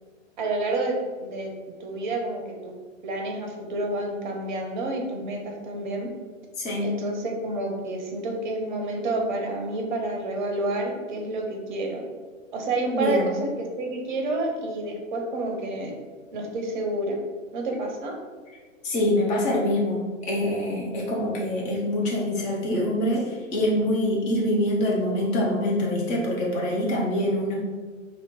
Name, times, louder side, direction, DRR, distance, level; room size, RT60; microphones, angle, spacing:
voice 1, 0.4-2.7 3.0-6.1 6.8-12.0 12.5-15.9 16.3-17.2 17.5-18.2, right 2 dB, 40° right, 2 dB, 0.8 m, -29 dB
voice 2, 6.6-6.9 12.9-13.3 18.8-27.5, left 1 dB, 20° left, -3 dB, 0.7 m, -25 dB
2.9 x 2.9 x 4.2 m, 1.4 s
figure-of-eight pair, 110°, 39 cm